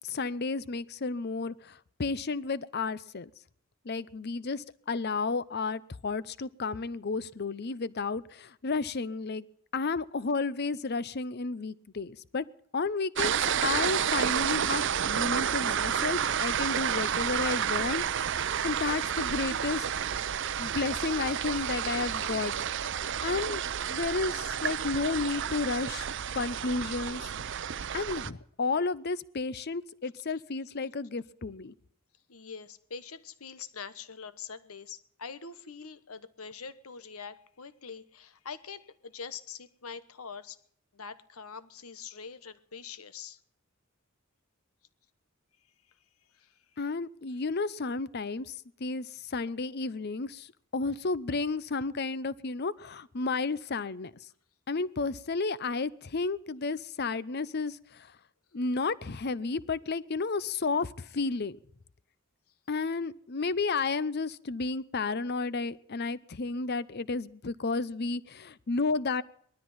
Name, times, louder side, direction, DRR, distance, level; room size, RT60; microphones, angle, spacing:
voice 1, 0.0-3.3 3.8-9.5 9.7-12.4 12.7-18.3 18.6-19.9 20.6-22.5 22.9-23.6 23.9-26.1 26.3-27.3 27.9-31.7 46.8-48.5 48.8-50.5 50.7-54.1 54.7-58.1 58.5-61.6 62.7-69.2, left 4 dB, 50° left, 18 dB, 0.7 m, -32 dB
sound 1, 13.2-28.3, right 8 dB, 55° right, 0.6 m, -30 dB
voice 2, 32.3-40.6 40.9-43.4 46.4-46.5, left 6 dB, 85° left, 14 dB, 1.1 m, -44 dB
19.0 x 13.0 x 5.6 m, 0.65 s
head